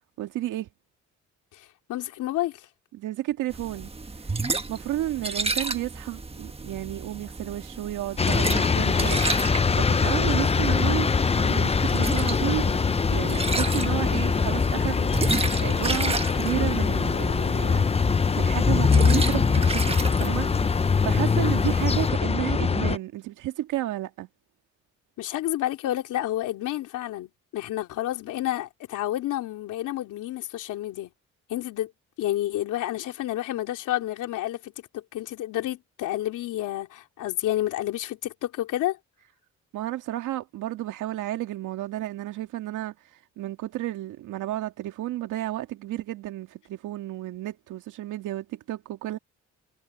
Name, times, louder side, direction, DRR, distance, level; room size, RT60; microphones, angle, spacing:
voice 1, 0.2-0.7 2.9-3.9 4.7-9.2 9.7-12.7 13.1-17.9 18.4-20.5 21.0-24.3 39.7-42.9 43.4-49.2, right 14 dB, 85° right, 2.0 m, -32 dB
voice 2, 1.5-2.7 25.2-31.1 31.5-31.9 32.2-39.0, left 14 dB, 85° left, 3.3 m, -30 dB
sound 1, 3.5-22.1, right 3 dB, 20° right, 1.5 m, -33 dB
sound 2, 8.2-23.0, left 5 dB, 20° left, 0.6 m, -23 dB
cardioid pair, 90°, 30 cm